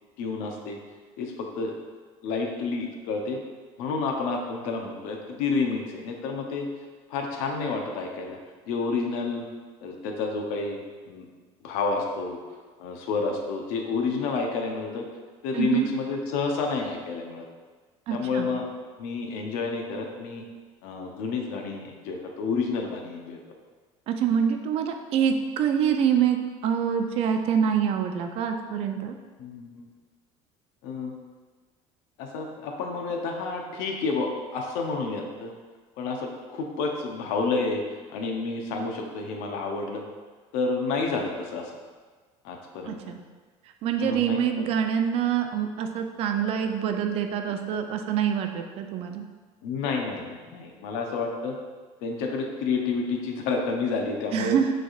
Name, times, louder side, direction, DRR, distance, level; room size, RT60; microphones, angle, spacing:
voice 1, 0.2-0.8 1.2-1.7 2.2-3.4 3.8-6.7 7.1-8.4 8.7-9.4 9.8-10.8 11.1-11.3 11.6-12.4 12.8-15.1 15.4-17.5 18.1-18.7 19.0-20.4 20.8-23.4 29.4-29.8 30.8-31.1 32.2-35.5 36.0-37.8 38.1-40.0 40.5-41.7 42.4-43.2 44.0-44.7 49.6-51.6 52.0-54.6, left 4 dB, 75° left, 2 dB, 0.7 m, -30 dB
voice 2, 15.5-15.9 18.1-18.5 24.1-26.4 26.6-29.1 42.9-43.2 43.8-49.2 54.3-54.7, right 8 dB, 50° right, 6 dB, 0.4 m, -25 dB
6.0 x 3.3 x 2.4 m, 1.4 s
cardioid pair, 140°, 13 cm